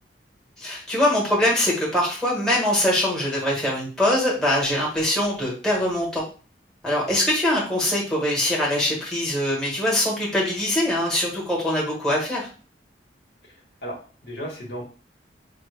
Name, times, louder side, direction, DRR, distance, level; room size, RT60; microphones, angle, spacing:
voice 1, 0.6-6.2 6.8-12.5, left 1 dB, 5° left, -4 dB, 1.2 m, -23 dB
voice 2, 13.8-14.8, equal, 65° left, -1 dB, 1.2 m, -35 dB
5.6 x 2.2 x 3.3 m, 0.39 s
head